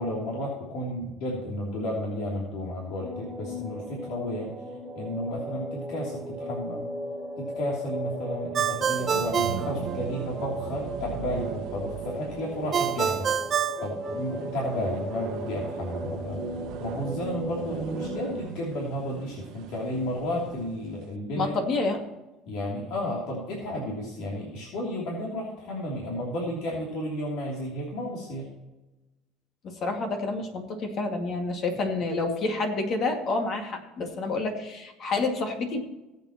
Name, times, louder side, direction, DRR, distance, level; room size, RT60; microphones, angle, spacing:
voice 1, 0.0-4.5 4.9-6.9 7.4-13.3 13.8-16.4 16.8-21.5 22.5-28.5, left 1 dB, 70° left, -3 dB, 3.1 m, -32 dB
sound 1, 3.0-18.4, equal, 10° right, 2.9 m, -37 dB
Ringtone, 8.5-10.5 12.7-14.7, right 8 dB, 30° right, 0.5 m, -27 dB
sound 2, 8.9-20.9, right 9 dB, 65° right, 1.0 m, -39 dB
voice 2, 21.4-22.0 29.6-35.8, left 3 dB, 45° left, 4 dB, 2.2 m, -28 dB
19.0 x 8.2 x 3.0 m, 1.0 s
cardioid pair, 140°, 0 cm